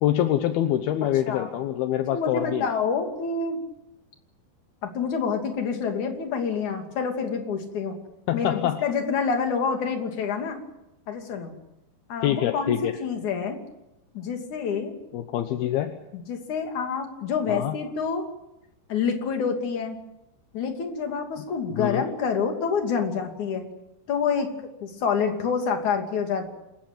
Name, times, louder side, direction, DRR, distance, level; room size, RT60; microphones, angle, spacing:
voice 1, 0.0-2.7 8.3-8.8 12.2-12.9 15.1-15.9 17.5-17.7 21.7-22.1, left 12 dB, 75° left, 7 dB, 2.9 m, -25 dB
voice 2, 2.1-3.6 4.8-8.0 8.3-10.6 11.1-11.5 12.1-12.7 13.0-13.6 14.1-14.9 16.1-18.2 18.9-20.0 20.5-23.7 24.1-26.5, left 6 dB, 50° left, 4 dB, 3.9 m, -27 dB
27.0 x 15.0 x 9.0 m, 0.89 s
omnidirectional pair, 4.5 m